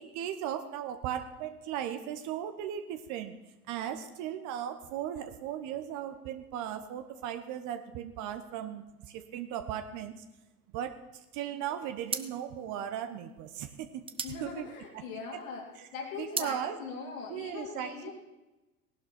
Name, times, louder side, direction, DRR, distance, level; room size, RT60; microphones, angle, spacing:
voice 1, 0.0-3.3 3.7-10.1 10.7-11.0 11.3-14.0 14.4-14.7 14.9-15.0 16.2-16.8 17.3-18.1, right 10 dB, 40° right, 8 dB, 1.1 m, -37 dB
sound 1, 11.4-11.6 12.0-15.4 15.8-16.6, right 6 dB, 10° right, 0.7 m, -39 dB
voice 2, 14.2-15.6 15.9-18.1, left 5 dB, 60° left, -1 dB, 3.1 m, -41 dB
18.0 x 11.5 x 4.3 m, 1.1 s
figure-of-eight pair, 80°, 45 cm